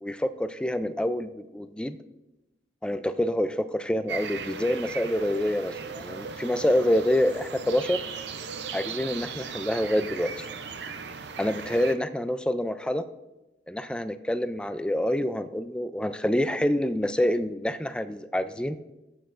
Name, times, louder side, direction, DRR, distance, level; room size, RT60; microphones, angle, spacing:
voice 1, 0.0-2.0 2.8-8.0 8.7-10.5 11.4-13.1 13.7-18.8, left 1 dB, 5° left, 11 dB, 0.3 m, -27 dB
sound 1, 4.1-12.0, right 5 dB, 70° right, 0.6 m, -37 dB
16.0 x 8.0 x 2.5 m, 1.0 s
head